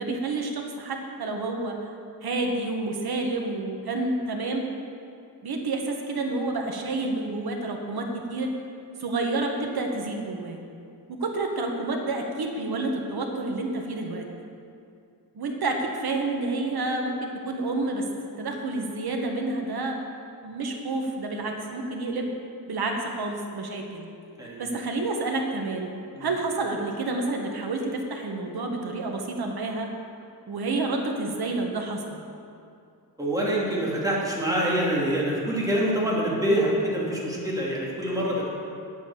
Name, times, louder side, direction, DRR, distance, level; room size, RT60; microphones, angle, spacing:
voice 1, 0.0-1.9 2.2-4.7 5.4-8.5 9.0-10.6 11.1-14.2 15.3-17.2 17.4-18.1 18.4-20.0 20.4-22.3 22.7-24.1 24.6-25.9 26.2-29.9 30.5-32.2, right 2 dB, 75° right, 2 dB, 1.4 m, -29 dB
voice 2, 33.2-38.5, right 1 dB, 10° right, -5 dB, 2.6 m, -25 dB
8.9 x 8.2 x 7.2 m, 2.5 s
wide cardioid pair, 130°, 37 cm